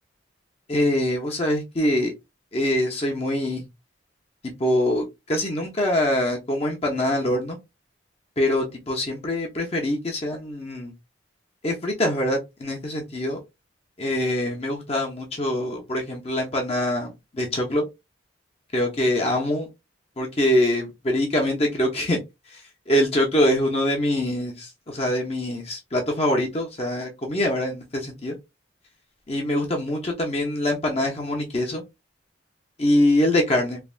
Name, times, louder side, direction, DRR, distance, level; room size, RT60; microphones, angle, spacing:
voice 1, 0.7-2.1 2.5-3.6 4.4-7.6 8.4-10.9 11.6-13.4 14.0-17.8 18.7-19.7 20.2-22.2 22.5-22.6 22.9-28.4 29.3-31.8 32.8-33.8, left 1 dB, 30° left, 0.7 m, -24 dB
3.2 x 2.3 x 2.4 m
head